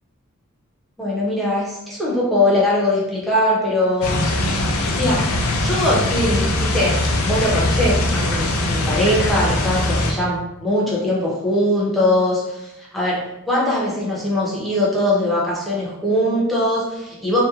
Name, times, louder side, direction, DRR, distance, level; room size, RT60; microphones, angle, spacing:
voice 1, 1.0-4.3 4.9-17.4, left 1 dB, ahead, -6 dB, 0.6 m, -21 dB
sound 1, 4.0-10.1, left 1 dB, 80° left, 0.4 m, -21 dB
2.7 x 2.1 x 2.4 m, 0.93 s
head